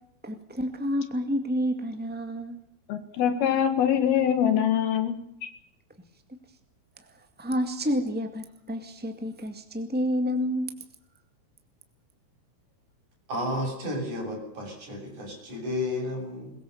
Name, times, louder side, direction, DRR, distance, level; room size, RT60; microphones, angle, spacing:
voice 1, 0.2-2.6 7.1-10.7, equal, 10° right, 6 dB, 0.4 m, -29 dB
voice 2, 2.9-5.2, left 9 dB, 70° left, 9 dB, 3.7 m, -23 dB
voice 3, 13.3-16.5, left 1 dB, 45° right, 0 dB, 9.2 m, -32 dB
22.0 x 21.5 x 7.2 m, 0.77 s
omnidirectional pair, 4.6 m